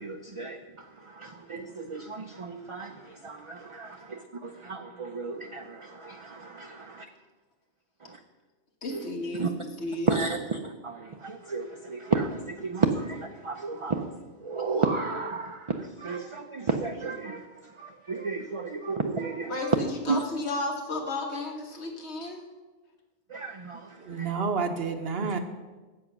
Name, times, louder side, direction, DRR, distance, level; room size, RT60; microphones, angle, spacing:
voice 1, 0.0-7.1 8.1-8.2 8.9-9.0 9.4-9.5 10.1-14.1 14.4-19.5 20.1-20.2 23.3-24.3 25.2-25.3, right 4 dB, 40° right, 5 dB, 0.4 m, -32 dB
voice 2, 8.8-10.1 19.5-22.4, left 2 dB, 85° left, 2 dB, 1.7 m, -33 dB
voice 3, 24.0-25.4, right 5 dB, 65° right, 7 dB, 1.0 m, -29 dB
7.8 x 7.7 x 5.9 m, 1.3 s
omnidirectional pair, 1.1 m